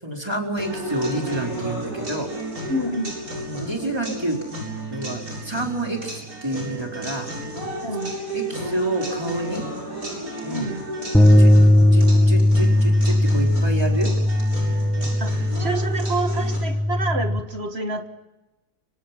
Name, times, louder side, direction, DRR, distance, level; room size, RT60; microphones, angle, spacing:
voice 1, 0.0-2.3 3.4-4.4 4.9-7.3 8.3-9.6 10.4-10.6 11.4-11.6 11.9-14.1 15.0-15.2, right 1 dB, 15° right, 1 dB, 4.4 m, -28 dB
sound 1, 0.6-16.6, right 1 dB, 65° right, 8.6 m, -33 dB
voice 2, 2.7-3.1 7.8-8.1 10.5-10.9 15.2-18.1, right 2 dB, 40° right, 7 dB, 1.8 m, -28 dB
sound 2, 11.1-17.4, left 1 dB, ahead, 1.6 m, -18 dB
25.5 x 25.0 x 6.0 m, 1.0 s
omnidirectional pair, 1.7 m